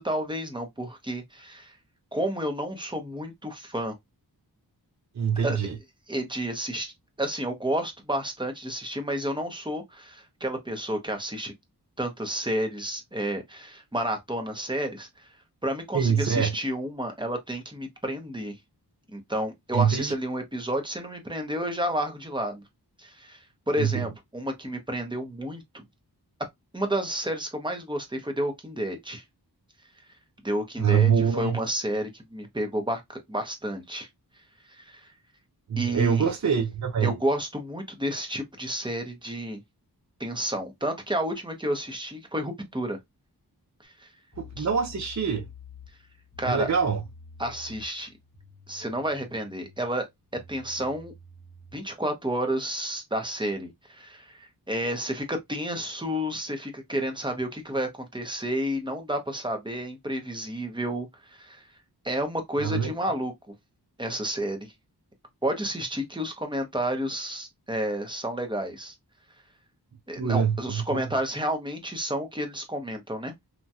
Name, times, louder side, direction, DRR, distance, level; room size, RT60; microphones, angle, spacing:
voice 1, 0.0-1.8 2.1-3.9 5.4-5.6 6.1-6.9 7.2-11.5 12.0-15.4 15.6-18.6 19.1-22.6 23.0-25.8 26.7-29.2 30.4-34.1 34.6-35.1 35.8-36.3 37.0-39.6 40.2-43.0 43.8-44.1 44.6-44.7 46.4-46.7 47.4-48.2 48.7-50.1 50.5-51.1 51.7-61.7 62.0-63.3 64.0-64.7 65.4-68.9 70.1-73.3, right 1 dB, 10° right, 0.9 m, -31 dB
voice 2, 5.2-5.7 15.9-16.5 19.7-20.1 23.8-24.0 30.8-31.6 35.7-37.2 44.4-45.5 46.4-47.0 62.6-62.9 70.2-71.0, right 7 dB, 45° right, 0.6 m, -24 dB
sound 1, 44.3-51.8, left 4 dB, 25° left, 1.0 m, -49 dB
3.0 x 2.3 x 2.7 m
wide cardioid pair, 80°, 40 cm